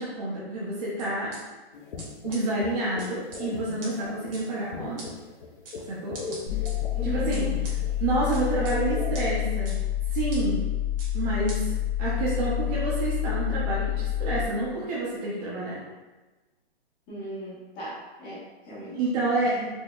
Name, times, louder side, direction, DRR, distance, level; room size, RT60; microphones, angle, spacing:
voice 1, 0.0-1.3 2.2-5.0 5.9-6.2 7.0-7.5 8.0-9.8 10.1-10.6 11.1-15.8 18.9-19.5, right 2 dB, 40° right, -7 dB, 0.7 m, -28 dB
sound 1, 1.0-1.4 2.0-2.1 2.3-2.4 3.0-3.4 3.8-3.9 4.3-4.4 5.0-5.1 5.6-5.8 6.1-6.7 7.3-7.7 8.3-8.7 9.1-9.2 9.6-9.8 10.3-10.4 11.0-11.1 11.5-11.6, right 2 dB, 60° right, 1.4 m, -42 dB
sound 2, 1.7-9.3, left 4 dB, 55° left, 0.5 m, -40 dB
voice 2, 6.2-6.6 6.9-7.6 17.1-19.0 19.4-19.7, equal, 15° left, -8 dB, 0.7 m, -38 dB
sound 3, 6.5-14.5, left 12 dB, 40° left, 1.0 m, -28 dB
4.4 x 2.7 x 2.3 m, 1.2 s
hypercardioid pair, 160°, 31 cm